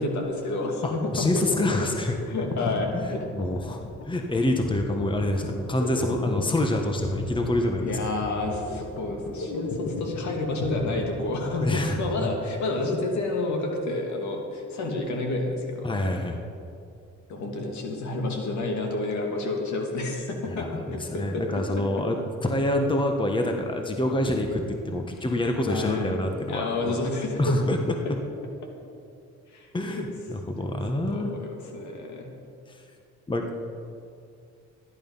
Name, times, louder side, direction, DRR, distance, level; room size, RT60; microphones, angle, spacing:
voice 1, 0.0-1.3 1.8-1.9 2.3-3.2 7.8-15.9 17.3-22.1 25.7-26.1 26.5-27.6 29.5-29.7 30.0-30.1 31.0-32.3, left 2 dB, 70° left, 1 dB, 2.6 m, -30 dB
voice 2, 0.8-2.2 3.3-7.9 11.6-12.0 15.8-16.4 20.6-22.2 22.4-27.0 27.4-27.8 29.7-31.3 32.7-32.8 33.3-33.6, left 1 dB, 15° left, 3 dB, 1.3 m, -26 dB
sound 1, 1.3-11.8, left 3 dB, 55° left, 1.8 m, -35 dB
14.0 x 11.0 x 5.5 m, 2.4 s
cardioid pair, 90°, 30 cm